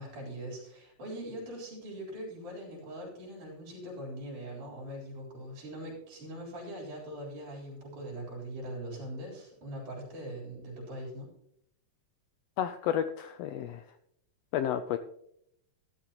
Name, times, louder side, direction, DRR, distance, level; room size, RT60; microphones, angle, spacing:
voice 1, 0.0-11.3, right 1 dB, 90° right, -3 dB, 5.5 m, -41 dB
voice 2, 12.6-13.8 14.5-15.0, left 10 dB, 85° left, 10 dB, 1.4 m, -31 dB
13.5 x 12.0 x 2.9 m, 0.74 s
omnidirectional pair, 3.4 m